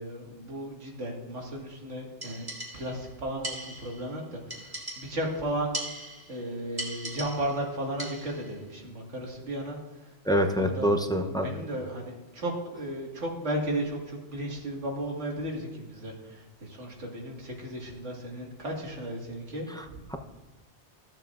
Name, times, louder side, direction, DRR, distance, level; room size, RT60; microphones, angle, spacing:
voice 1, 0.0-2.5 2.7-9.8 10.4-20.0, right 1 dB, 85° right, -1 dB, 2.2 m, -35 dB
sound 1, 2.2-3.1 3.4-4.1 4.5-5.3 5.7-6.4 6.8-7.6 8.0-8.5, right 1 dB, 20° right, 1.8 m, -39 dB
voice 2, 10.3-11.5, equal, 5° left, 4 dB, 0.5 m, -25 dB
15.0 x 7.3 x 2.5 m, 1.1 s
omnidirectional pair, 1.2 m